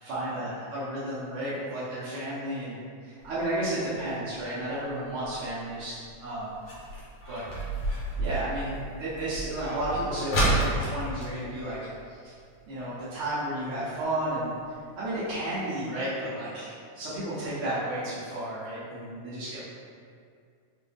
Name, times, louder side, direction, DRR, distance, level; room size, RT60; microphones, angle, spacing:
voice 1, 0.1-2.8 3.0-6.5 7.3-7.4 8.2-11.8 12.1-12.3 12.7-14.5 14.9-19.7, right 1 dB, 70° right, -12 dB, 1.2 m, -32 dB
sound 1, 3.2-12.5 12.8-12.9 13.1-13.5 14.0-14.1 14.6-14.7 15.0-15.1 15.5-15.6, right 1 dB, 65° left, 1.6 m, -32 dB
5.4 x 2.6 x 3.4 m, 2.2 s
omnidirectional pair, 3.6 m